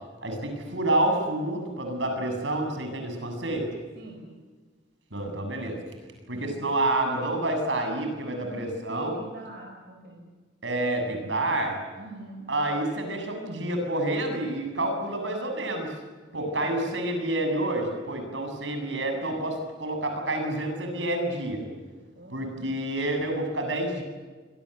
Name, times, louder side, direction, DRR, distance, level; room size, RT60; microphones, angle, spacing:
voice 1, 0.2-3.7 5.1-5.8 6.3-9.1 10.6-11.8 12.5-15.9 16.3-21.6 22.3-24.0, right 1 dB, 75° right, 5 dB, 7.8 m, -28 dB
voice 2, 4.0-4.3 8.3-10.3 11.9-12.5 14.8-15.6 16.3-16.7 22.2-22.6, right 2 dB, 55° right, 1 dB, 5.2 m, -45 dB
26.5 x 25.0 x 8.2 m, 1.4 s
head